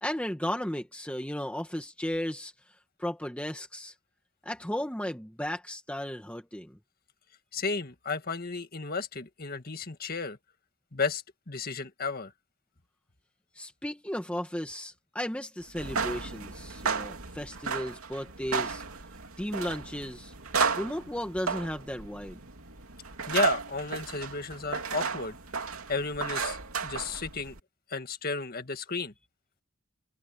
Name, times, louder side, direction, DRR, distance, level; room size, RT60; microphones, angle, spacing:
voice 1, 0.0-2.5 3.0-3.9 4.4-6.8 13.5-18.8 19.4-20.3 20.8-22.4, equal, 5° left, 1.6 m, -35 dB
voice 2, 7.5-10.4 10.9-12.3 23.3-25.4 25.9-26.6 26.8-27.5 27.9-29.1, left 4 dB, 45° left, 1.8 m, -33 dB
sound 1, 15.7-27.6, right 5 dB, 85° right, 3.0 m, -34 dB
head